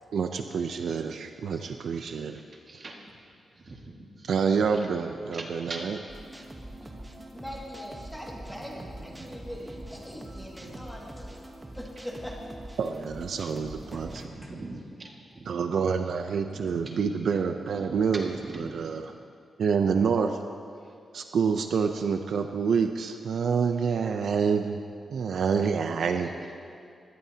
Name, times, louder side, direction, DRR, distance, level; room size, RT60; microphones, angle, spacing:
voice 1, 0.1-2.4 4.3-6.0 12.8-14.2 15.5-19.0 19.6-20.4 21.1-24.8 25.1-26.3, right 6 dB, 70° right, 6 dB, 0.6 m, -27 dB
voice 2, 1.5-1.8 2.3-3.2 3.5-4.9 5.3-6.0 6.8-6.9 8.4-9.3 9.6-10.2 10.6-10.8 13.1-15.6 16.4-17.2 17.7-19.0 20.8-21.0 26.2-26.5, right 2 dB, 35° right, 0 dB, 1.9 m, -44 dB
sound 1, 6.1-14.3, right 1 dB, 15° right, 1.1 m, -44 dB
voice 3, 7.3-12.4 14.2-14.3, equal, 5° left, -3 dB, 2.1 m, -42 dB
22.5 x 17.0 x 2.9 m, 2.4 s
wide cardioid pair, 170°, 0 cm